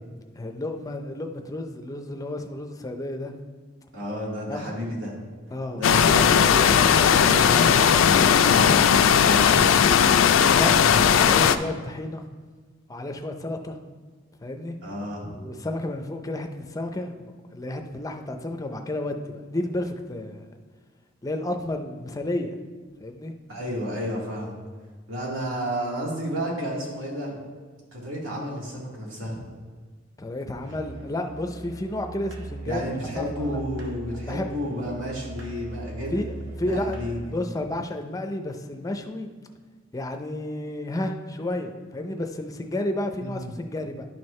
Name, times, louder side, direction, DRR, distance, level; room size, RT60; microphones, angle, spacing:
voice 1, 0.4-3.3 4.5-4.6 5.5-5.8 10.5-12.2 12.9-13.8 14.4-14.8 15.4-20.5 21.2-22.5 23.0-23.3 30.2-32.8 33.2-33.6 34.3-34.5 36.1-36.3 36.6-39.4 39.9-44.1, left 1 dB, 20° left, 5 dB, 0.5 m, -31 dB
voice 2, 3.9-5.1 5.7-8.1 8.4-8.8 9.5-9.8 10.4-11.2 14.8-15.3 23.5-24.6 25.1-27.4 27.9-29.4 32.6-36.1 36.7-37.5 43.2-43.5, equal, 80° right, -4 dB, 2.2 m, -31 dB
sound 1, 5.8-11.6, left 7 dB, 85° left, 0.3 m, -17 dB
Musical instrument, 30.6-37.4, right 2 dB, 65° right, 1.0 m, -39 dB
11.0 x 4.5 x 3.2 m, 1.5 s
head